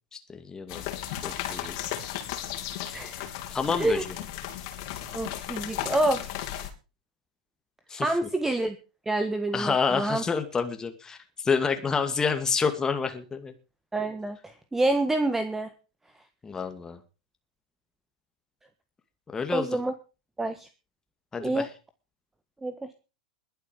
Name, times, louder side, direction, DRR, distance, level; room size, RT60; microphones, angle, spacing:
voice 1, 0.1-0.9 1.2-1.8 3.5-4.1 7.9-8.1 9.5-13.5 16.4-17.0 19.3-19.7 21.3-21.7, left 5 dB, 15° left, 7 dB, 2.3 m, -28 dB
sound 1, 0.7-6.7, left 11 dB, 50° left, 3.5 m, -35 dB
voice 2, 2.9-3.3 3.8-4.0 5.1-6.2 8.0-8.8 9.0-10.2 13.9-15.7 19.5-19.9 20.4-20.7 21.4-21.7 22.6-22.8, right 2 dB, 10° right, 10 dB, 1.5 m, -27 dB
21.0 x 8.3 x 5.2 m, 0.33 s
figure-of-eight pair, 95°, 4 cm